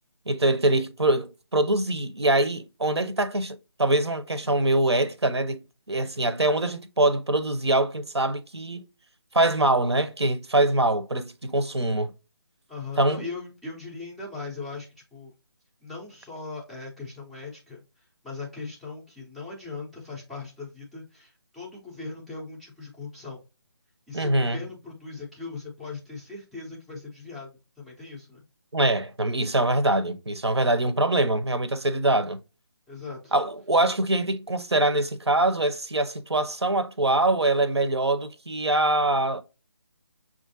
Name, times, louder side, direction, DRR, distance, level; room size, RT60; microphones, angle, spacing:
voice 1, 0.3-5.6 5.9-8.8 9.3-12.1 13.0-13.2 24.1-24.6 28.7-32.4 33.3-39.4, right 2 dB, 85° right, 0.7 m, -24 dB
voice 2, 12.7-15.3 15.8-23.4 24.1-27.5 27.8-28.4 32.9-33.3, left 4 dB, ahead, 0.4 m, -39 dB
6.0 x 2.5 x 2.6 m
figure-of-eight pair, 150°, 14 cm